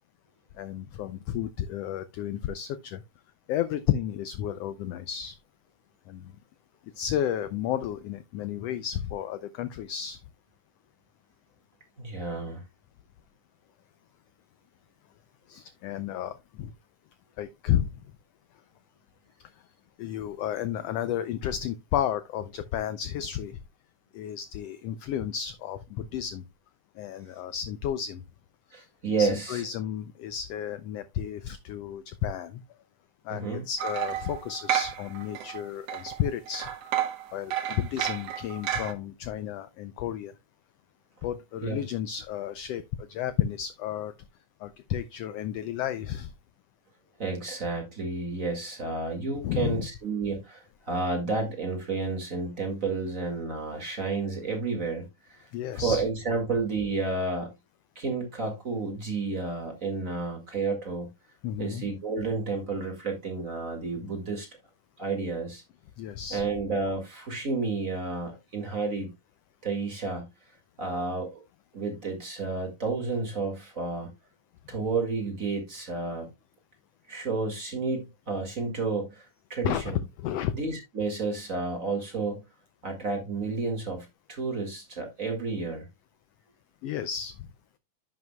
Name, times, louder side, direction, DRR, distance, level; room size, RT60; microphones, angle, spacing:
voice 1, 0.6-3.0 3.5-5.4 6.1-6.3 7.0-10.2 15.5-16.7 17.4-17.9 20.0-23.6 24.1-26.4 27.0-28.2 28.7-28.8 29.2-32.6 33.3-36.7 37.3-40.3 41.2-42.8 43.1-44.1 44.6-46.3 49.4-49.9 55.5-56.0 61.4-61.8 66.0-66.4 79.6-79.8 80.2-80.5 86.8-87.3, left 10 dB, 85° left, 1.4 m, -32 dB
voice 2, 12.0-12.6 28.7-29.6 33.3-33.6 41.6-41.8 47.2-55.5 55.7-57.5 58.0-61.1 61.6-64.5 65.0-65.6 66.3-69.1 69.6-70.3 70.8-71.4 71.7-74.1 74.7-76.3 77.1-80.0 80.5-82.4 82.8-85.9, right 3 dB, 30° right, 2.0 m, -31 dB
sound 1, 33.8-35.6 35.9-38.9, right 10 dB, 65° right, 2.0 m, -31 dB
10.5 x 7.9 x 2.2 m
omnidirectional pair, 3.4 m